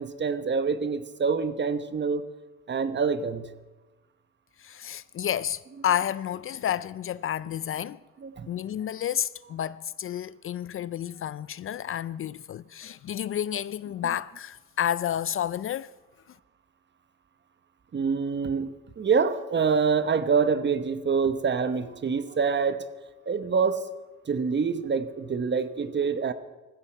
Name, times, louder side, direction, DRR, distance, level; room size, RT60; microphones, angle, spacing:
voice 1, 0.0-2.2 2.7-3.5 8.2-8.5 17.9-22.8 23.3-23.8 24.3-26.3, right 5 dB, 35° right, 1.1 m, -26 dB
voice 2, 4.6-8.0 8.5-15.9, left 10 dB, 45° left, 0.4 m, -30 dB
19.0 x 15.5 x 4.6 m
cardioid pair, 90°, 30 cm